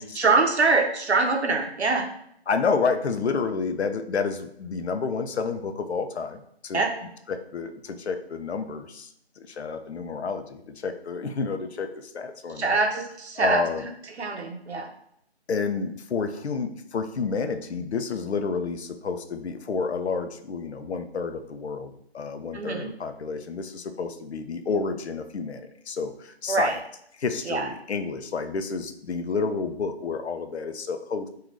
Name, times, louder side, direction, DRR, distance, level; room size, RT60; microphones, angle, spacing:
voice 1, 0.2-2.1 6.7-6.9 12.6-13.6 14.2-14.9 22.5-22.9 26.5-26.8 27.5-27.7, right 3 dB, 80° right, 4 dB, 0.7 m, -24 dB
voice 2, 2.5-6.8 7.3-9.1 9.4-12.8 13.4-13.8 15.5-26.8 27.2-31.3, left 5 dB, 75° left, 7 dB, 0.5 m, -30 dB
3.2 x 2.4 x 2.4 m, 0.72 s
figure-of-eight pair, 170°, 33 cm